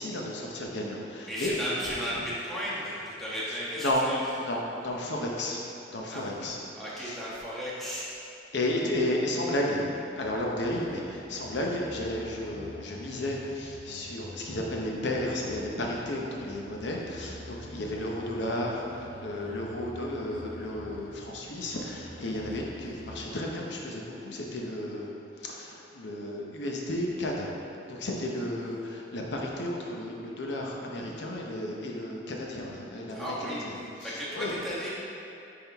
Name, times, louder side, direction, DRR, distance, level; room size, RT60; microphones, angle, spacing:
voice 1, 0.0-1.6 3.8-4.1 4.4-5.6 5.9-6.6 7.0-7.2 8.5-27.5 27.9-33.7 34.0-34.5, left 1 dB, 75° left, -1 dB, 0.8 m, -33 dB
voice 2, 1.2-4.2 6.1-6.3 6.8-8.1 33.1-34.9, equal, ahead, -9 dB, 1.2 m, -35 dB
sound 1, 10.2-23.5, equal, 80° right, 0.9 m, -47 dB
10.0 x 3.7 x 3.5 m, 2.8 s
head